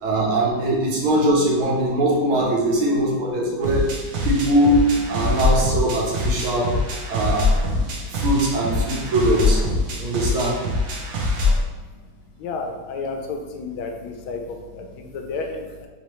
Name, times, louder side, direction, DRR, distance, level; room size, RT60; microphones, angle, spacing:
voice 1, 0.0-3.9 4.2-6.8 7.1-7.7 8.1-9.6 10.0-10.6, right 1 dB, 85° right, -2 dB, 1.7 m, -21 dB
sound 1, 3.6-11.6, left 2 dB, 65° right, 0.9 m, -23 dB
voice 2, 12.4-14.4 15.0-15.9, left 4 dB, 85° left, 3 dB, 1.4 m, -31 dB
4.0 x 3.1 x 3.0 m, 1.3 s
omnidirectional pair, 2.2 m